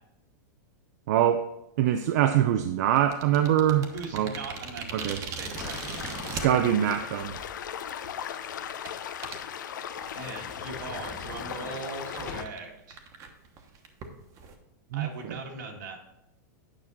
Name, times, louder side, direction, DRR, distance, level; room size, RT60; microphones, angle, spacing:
voice 1, 1.1-1.5 1.8-4.3 4.9-5.2 6.4-7.4 14.9-15.4, right 11 dB, 60° right, 8 dB, 0.5 m, -24 dB
sound 1, 3.0-6.4 7.3-7.4 7.9-8.1 8.8-8.9 9.2-9.4 10.0-10.4 10.8-10.9 11.2-11.3 11.8-11.9 12.1-12.2 12.5-12.6 12.9-14.5, right 5 dB, 35° right, 1.1 m, -38 dB
voice 2, 3.9-6.3 10.1-13.0 14.9-16.0, right 3 dB, 80° right, 1 dB, 2.0 m, -40 dB
sound 2, 5.4-8.0 8.4-8.5 8.9-9.0 9.3-9.4 9.7-9.8 10.1-12.7, left 4 dB, 25° left, 1.4 m, -47 dB
sound 3, 5.5-12.4, left 9 dB, 85° left, 0.6 m, -38 dB
9.0 x 6.0 x 4.1 m, 0.85 s
supercardioid pair, 140°, 10 cm